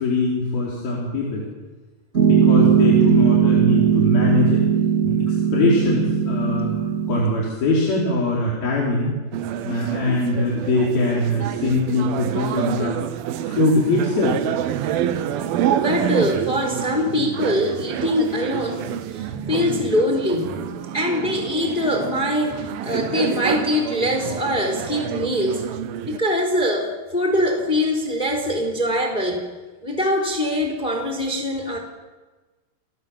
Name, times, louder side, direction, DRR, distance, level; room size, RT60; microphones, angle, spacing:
voice 1, 0.0-1.5 2.2-4.6 5.0-6.7 7.1-9.1 9.6-13.0 13.4-14.4, left 2 dB, 60° left, -4 dB, 6.0 m, -22 dB
Piano, 2.1-7.2, right 8 dB, 25° right, 1.7 m, -18 dB
sound 1, 9.3-26.2, right 10 dB, 75° right, 2.6 m, -28 dB
voice 2, 15.7-20.6 20.9-25.6 26.0-29.4 29.8-31.8, left 1 dB, 10° left, 3 dB, 3.5 m, -23 dB
30.0 x 20.5 x 7.4 m, 1.3 s
omnidirectional pair, 4.9 m